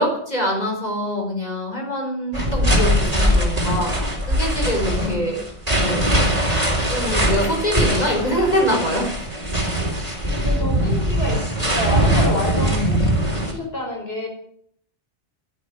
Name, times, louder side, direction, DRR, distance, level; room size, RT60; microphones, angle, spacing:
voice 1, 0.0-5.4 5.8-6.1 6.9-9.1 12.6-13.1, equal, 35° left, 1 dB, 5.0 m, -24 dB
sound 1, 2.3-13.5, equal, 30° right, 4.0 m, -21 dB
voice 2, 4.9-5.4 10.3-14.3, equal, 60° left, 0 dB, 5.4 m, -29 dB
13.0 x 10.5 x 9.4 m, 0.65 s
omnidirectional pair, 1.2 m